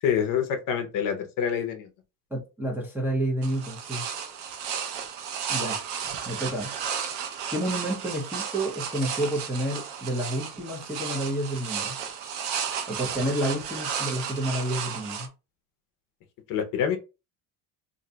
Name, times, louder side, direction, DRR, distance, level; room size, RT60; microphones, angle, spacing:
voice 1, 0.0-1.9 16.5-17.0, left 8 dB, 50° left, 0.6 m, -26 dB
voice 2, 2.3-4.0 5.5-5.8 6.3-6.7 7.5-12.0 12.9-15.3, right 1 dB, 5° right, 0.5 m, -29 dB
sound 1, 3.4-15.3, right 7 dB, 90° right, 0.8 m, -33 dB
2.6 x 2.2 x 3.8 m
cardioid pair, 160°, 43 cm